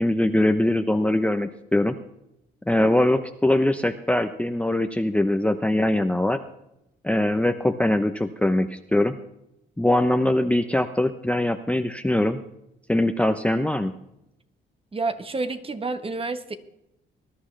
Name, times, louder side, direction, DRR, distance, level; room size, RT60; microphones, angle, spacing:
voice 1, 0.0-2.0 2.7-6.4 7.0-9.2 9.8-12.4 12.9-13.9, left 1 dB, 5° left, 9 dB, 0.7 m, -22 dB
voice 2, 14.9-16.5, right 3 dB, 30° right, 10 dB, 1.3 m, -29 dB
20.0 x 11.5 x 3.3 m, 0.84 s
cardioid pair, 90°, 20 cm